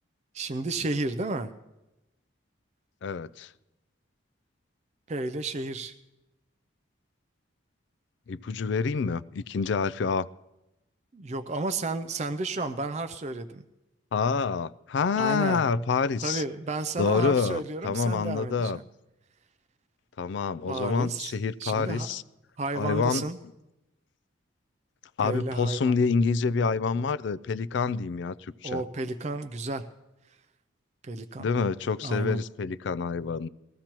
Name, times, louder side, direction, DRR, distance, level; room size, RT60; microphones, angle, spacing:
voice 1, 0.3-1.5 5.1-6.0 11.1-13.6 15.2-15.6 16.2-18.8 20.7-22.1 22.6-23.4 25.2-26.0 28.6-29.8 31.0-31.5 32.0-32.4, right 3 dB, 35° right, 0.4 m, -32 dB
voice 2, 3.0-3.5 8.3-10.3 14.1-16.4 17.0-18.8 20.2-22.2 22.8-23.3 25.2-28.8 31.4-33.5, left 5 dB, 60° left, 0.3 m, -27 dB
20.5 x 14.5 x 3.0 m
head